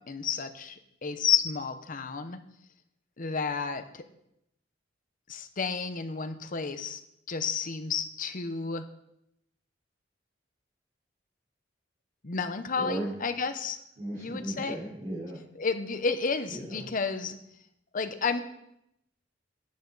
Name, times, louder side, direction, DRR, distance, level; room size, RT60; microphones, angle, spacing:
voice 1, 0.1-2.4 3.2-4.0 5.3-7.0 7.3-8.9 12.2-13.8 14.2-14.8 15.6-17.4 17.9-18.4, left 5 dB, 45° left, 9 dB, 0.8 m, -31 dB
voice 2, 12.8-13.1 14.0-15.4 16.5-16.9, right 1 dB, 40° right, -9 dB, 3.9 m, -36 dB
12.0 x 9.3 x 4.0 m, 0.78 s
head